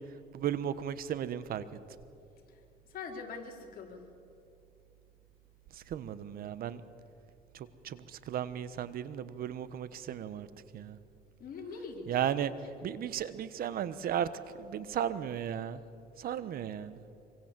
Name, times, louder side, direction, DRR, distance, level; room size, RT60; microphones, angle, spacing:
voice 1, 0.3-1.6 5.9-6.8 7.5-10.5 10.7-11.0 12.1-12.5 12.8-14.3 14.6-15.8 16.2-17.0, right 10 dB, 60° right, 15 dB, 1.2 m, -35 dB
voice 2, 2.5-4.0 11.4-12.7, left 4 dB, 60° left, 1 dB, 4.1 m, -44 dB
25.5 x 25.0 x 7.6 m, 2.7 s
cardioid pair, 110°, 17 cm